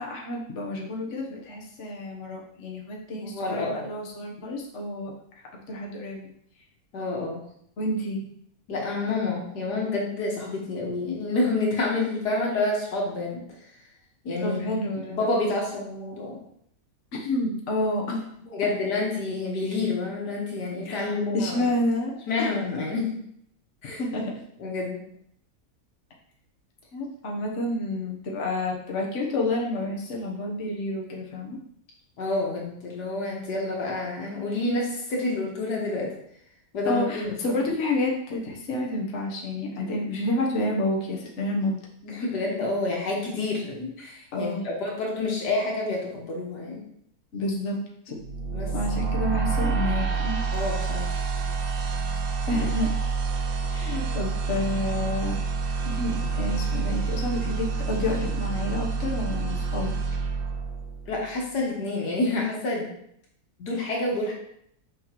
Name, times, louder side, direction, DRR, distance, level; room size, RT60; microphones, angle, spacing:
voice 1, 0.0-6.3 7.8-8.2 14.4-15.2 17.1-18.2 20.8-22.1 22.4-22.5 24.0-24.4 26.9-31.6 36.8-41.8 44.3-44.7 47.3-48.2 48.7-50.4 52.5-52.9 53.7-55.3 55.8-60.0, left 1 dB, 50° left, -2 dB, 1.3 m, -29 dB
voice 2, 3.1-3.9 6.9-7.4 8.7-13.6 14.2-14.8 15.1-16.4 18.5-21.7 22.3-23.2 23.8-24.0 24.6-25.0 32.2-36.1 36.7-37.6 42.0-46.8 48.5-48.7 50.5-51.1 61.1-62.9 63.6-64.3, left 2 dB, 85° left, -2 dB, 2.1 m, -28 dB
sound 1, 48.2-61.3, right 5 dB, 70° right, 0.5 m, -28 dB
6.3 x 6.0 x 3.0 m, 0.70 s
omnidirectional pair, 1.7 m